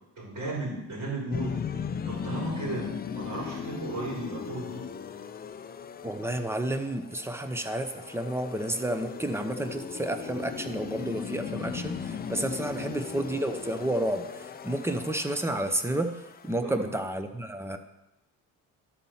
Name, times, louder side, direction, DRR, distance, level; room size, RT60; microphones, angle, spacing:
voice 1, 0.2-2.9 3.1-4.9 12.7-12.9 16.6-16.9, right 2 dB, 55° right, -4 dB, 3.8 m, -35 dB
sound 1, 1.3-16.6, left 7 dB, 25° left, 0.4 m, -38 dB
voice 2, 6.0-16.1 16.4-17.8, right 1 dB, 5° right, 7 dB, 0.7 m, -31 dB
12.0 x 4.2 x 5.7 m, 0.94 s
cardioid pair, 110°, 36 cm